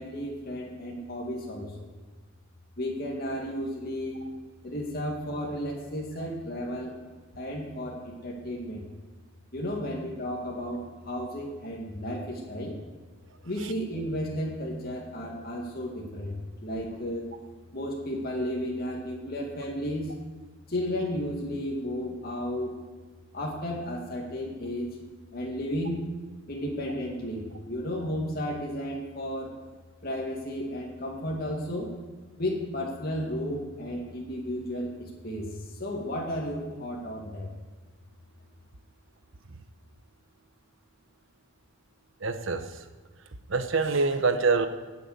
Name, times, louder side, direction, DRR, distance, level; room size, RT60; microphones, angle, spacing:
voice 1, 0.0-1.9 2.8-4.3 4.6-6.9 7.4-8.8 9.5-12.8 13.4-17.3 17.7-20.1 20.7-22.8 23.3-25.0 25.3-26.1 26.5-29.5 30.0-31.9 32.4-37.5, equal, 50° left, -2 dB, 2.3 m, -33 dB
voice 2, 42.2-42.6 43.5-44.7, right 4 dB, 70° right, 9 dB, 1.1 m, -25 dB
17.5 x 7.1 x 6.8 m, 1.3 s
head